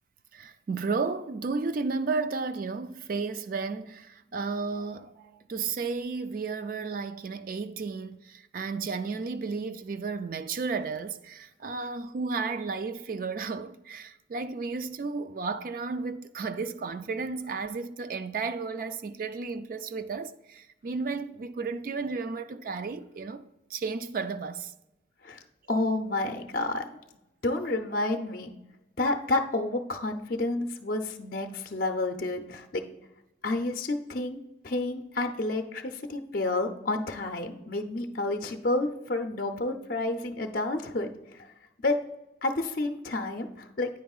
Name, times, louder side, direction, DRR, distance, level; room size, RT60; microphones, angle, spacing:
voice 1, 0.3-23.4 23.7-24.7, right 4 dB, 45° right, 0.3 m, -33 dB
voice 2, 25.7-26.9 27.4-28.5 29.0-32.8 33.4-34.4 34.6-41.1 41.8-41.9 42.4-43.9, left 2 dB, 45° left, 0.5 m, -30 dB
9.4 x 9.0 x 2.4 m
head